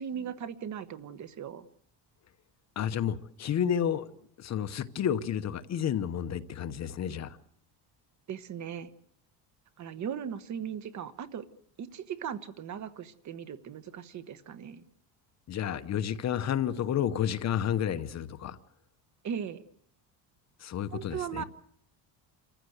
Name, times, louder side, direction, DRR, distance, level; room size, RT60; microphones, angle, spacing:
voice 1, 0.0-1.7 8.3-8.9 9.8-11.4 11.8-14.8 19.2-19.6 20.9-21.4, right 8 dB, 40° right, 1.2 m, -38 dB
voice 2, 2.8-4.1 4.4-7.4 15.5-18.6 20.6-21.4, left 9 dB, 35° left, 1.0 m, -31 dB
28.0 x 15.0 x 8.0 m
cardioid pair, 150°, 44 cm